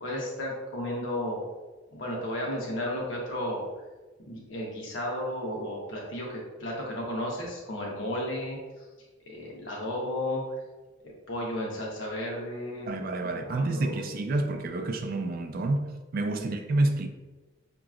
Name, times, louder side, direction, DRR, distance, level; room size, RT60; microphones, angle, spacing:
voice 1, 0.0-1.4 1.9-3.6 4.2-8.9 9.3-10.4 11.3-12.9 13.2-14.1 16.4-16.5, left 1 dB, 70° left, 1.0 m, -33 dB
voice 2, 12.9-17.1, right 2 dB, 50° right, 0.4 m, -29 dB
5.9 x 2.9 x 2.4 m
head